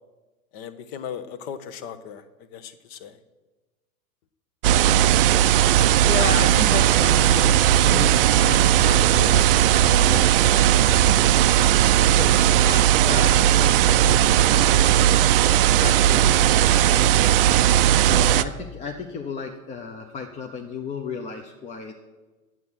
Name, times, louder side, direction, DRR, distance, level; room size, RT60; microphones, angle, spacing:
voice 1, 0.5-3.2, left 8 dB, 45° left, 12 dB, 1.0 m, -37 dB
sound 1, 4.6-18.4, right 11 dB, 45° right, 0.4 m, -17 dB
voice 2, 6.0-11.2 12.0-17.3 18.0-21.9, left 5 dB, 15° left, 3 dB, 0.6 m, -34 dB
9.3 x 7.6 x 7.9 m, 1.2 s
figure-of-eight pair, 90°, 42 cm